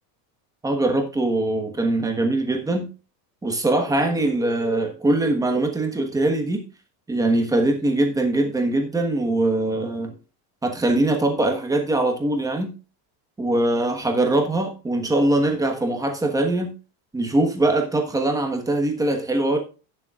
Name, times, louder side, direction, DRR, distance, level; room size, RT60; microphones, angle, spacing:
voice 1, 0.6-2.9 3.4-6.6 7.1-10.1 10.6-12.7 13.4-16.7 17.1-19.6, right 2 dB, 5° right, 1.3 m, -22 dB
18.0 x 7.1 x 2.4 m
cardioid pair, 175°, 46 cm